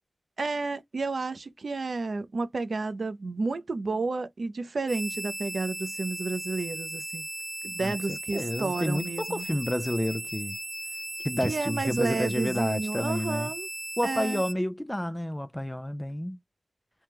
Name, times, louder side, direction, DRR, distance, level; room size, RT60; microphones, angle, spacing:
voice 1, 0.4-7.2 7.6-9.4 11.4-13.7 14.0-14.4, right 3 dB, 60° right, 0.5 m, -31 dB
sound 1, 4.9-14.5, right 1 dB, 30° right, 1.0 m, -37 dB
voice 2, 7.8-10.6 11.2-13.5 14.0-16.4, left 1 dB, 10° left, 0.3 m, -30 dB
3.4 x 2.2 x 2.9 m
wide cardioid pair, 115°, 0 cm